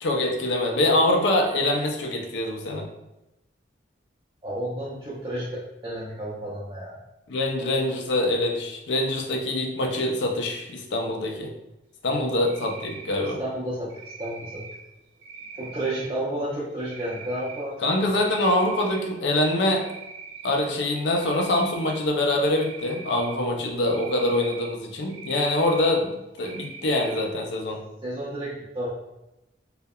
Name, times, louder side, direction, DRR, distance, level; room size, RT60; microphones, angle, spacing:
voice 1, 0.0-2.9 7.3-11.5 12.0-13.4 17.8-19.9 20.4-27.8, left 1 dB, 75° left, 2 dB, 0.4 m, -24 dB
voice 2, 4.4-7.0 12.1-12.3 13.4-13.9 14.2-14.7 15.5-17.8 28.0-28.9, right 1 dB, 25° right, -8 dB, 0.4 m, -31 dB
Cricket, 12.4-13.3 13.9-14.8 15.2-16.1 16.8-17.6 18.0-19.0 19.4-20.5 21.1-22.0 22.5-23.4 23.9-24.7 25.1-25.9 26.4-27.2, right 5 dB, 70° right, 0.7 m, -42 dB
2.7 x 2.0 x 2.2 m, 0.92 s
head